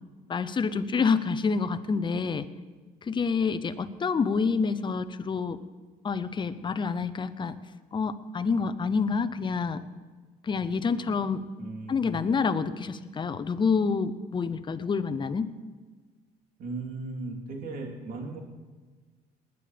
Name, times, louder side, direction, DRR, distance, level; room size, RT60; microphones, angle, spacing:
voice 1, 0.3-2.4 3.1-5.6 6.0-7.6 7.9-9.8 10.4-11.4 11.9-15.5, left 5 dB, 30° left, 12 dB, 0.8 m, -27 dB
voice 2, 11.5-12.2 16.6-18.4, right 3 dB, 60° right, 0 dB, 3.6 m, -37 dB
20.0 x 9.4 x 5.2 m, 1.4 s
cardioid pair, 110°, 17 cm